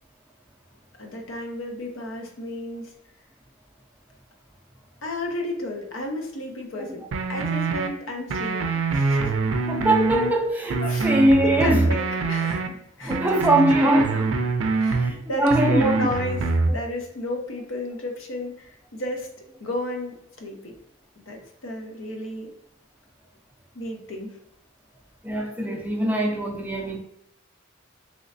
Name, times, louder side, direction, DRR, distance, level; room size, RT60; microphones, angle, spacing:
voice 1, 1.0-2.9 5.0-8.6 8.9-9.3 10.8-11.1 11.4-12.6 13.0-13.5 13.8-14.2 14.8-20.7 21.2-22.5 23.7-24.4, left 1 dB, 80° left, 0.7 m, -32 dB
sound 1, 7.1-7.9 8.3-10.3 10.7-12.7 13.1-15.1 15.5-16.7, right 3 dB, 85° right, 0.4 m, -24 dB
voice 2, 9.7-11.9 13.0-14.2 15.0-16.0 25.2-27.0, right 1 dB, 10° right, 0.4 m, -22 dB
3.1 x 3.0 x 2.6 m
head